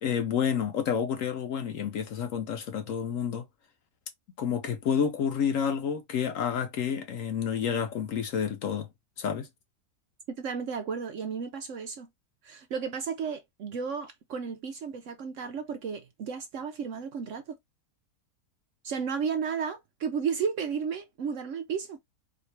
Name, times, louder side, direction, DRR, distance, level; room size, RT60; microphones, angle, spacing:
voice 1, 0.0-3.4 4.4-8.9 9.2-9.5, left 7 dB, 70° left, 0.8 m, -29 dB
voice 2, 10.4-12.1 12.4-17.6 18.8-22.0, right 6 dB, 65° right, 0.8 m, -33 dB
4.3 x 2.8 x 3.2 m
omnidirectional pair, 1.7 m